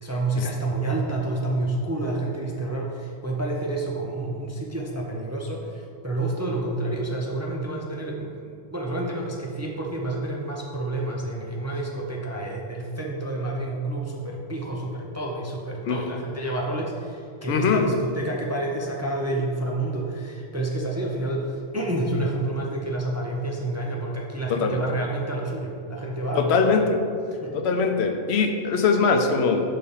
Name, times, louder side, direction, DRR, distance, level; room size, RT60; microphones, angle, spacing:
voice 1, 0.0-26.5 27.4-27.6, right 2 dB, 25° right, -2 dB, 0.4 m, -29 dB
voice 2, 17.5-17.9 24.5-24.8 26.3-27.0 27.5-29.6, left 5 dB, 85° left, 5 dB, 0.9 m, -22 dB
5.5 x 3.4 x 5.5 m, 2.4 s
omnidirectional pair, 1.1 m